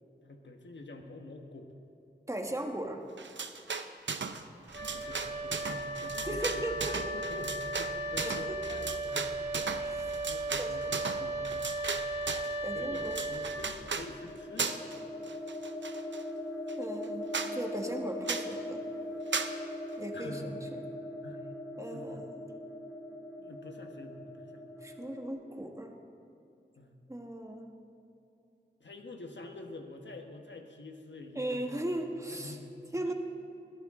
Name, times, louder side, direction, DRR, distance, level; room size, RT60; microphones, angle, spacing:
voice 1, 0.2-1.8 4.5-6.9 7.1-9.8 10.3-11.7 12.7-14.8 20.1-20.6 21.2-21.5 21.9-22.2 23.4-24.7 26.8-26.9 28.8-31.8 32.2-32.7 33.1-33.2, left 2 dB, 80° left, 4 dB, 1.4 m, -47 dB
voice 2, 2.3-3.0 6.2-7.0 8.2-8.6 9.8-10.2 10.6-10.7 12.6-13.2 16.8-18.8 20.0-20.6 21.8-22.4 24.8-26.0 27.1-27.7 31.3-32.6 32.9-33.1, right 1 dB, 15° right, 3 dB, 1.6 m, -37 dB
sound 1, 3.2-4.4 4.7-12.5 12.9-14.1 14.6-15.0 15.3-16.2 16.7-16.8 17.0-17.1 17.3-17.5 18.3-18.5 19.3-19.5, right 5 dB, 90° right, 0.7 m, -36 dB
Wind instrument woodwind instrument, 4.7-14.2, right 2 dB, 70° right, 1.7 m, -36 dB
sound 2, 13.5-25.3, left 1 dB, 55° left, 4.5 m, -41 dB
21.0 x 14.0 x 3.8 m, 2.8 s
wide cardioid pair, 75°, 18 cm